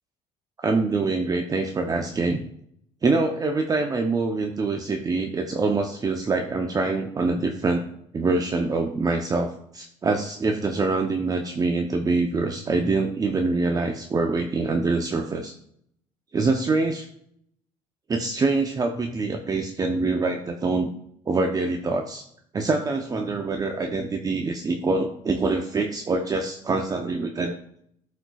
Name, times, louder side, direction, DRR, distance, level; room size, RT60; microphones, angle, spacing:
voice 1, 0.6-2.4 3.0-7.8 8.1-15.6 16.3-17.1 18.1-20.9 21.3-22.2 22.5-27.5, right 3 dB, 25° right, 3 dB, 0.7 m, -25 dB
12.0 x 4.4 x 2.4 m, 0.68 s
supercardioid pair, 95°, 13 cm